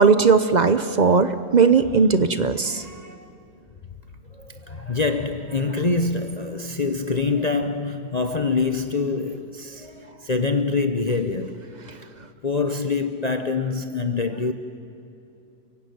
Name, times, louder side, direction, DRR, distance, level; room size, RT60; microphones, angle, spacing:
voice 1, 0.0-2.8, right 5 dB, 50° right, 0.5 m, -18 dB
voice 2, 2.6-3.3 4.3-11.7 12.4-14.5, left 4 dB, 35° left, 0.7 m, -25 dB
29.5 x 16.0 x 9.4 m
omnidirectional pair, 1.9 m